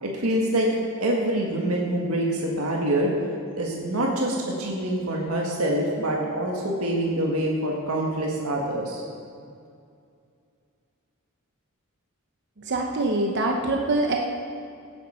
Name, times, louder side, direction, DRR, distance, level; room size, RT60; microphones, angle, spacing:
voice 1, 0.0-0.7 1.0-3.1 3.6-9.0, right 1 dB, 75° right, -1 dB, 1.8 m, -25 dB
voice 2, 12.6-14.2, right 2 dB, 55° right, 1 dB, 0.9 m, -24 dB
16.5 x 9.7 x 4.4 m, 2.4 s
head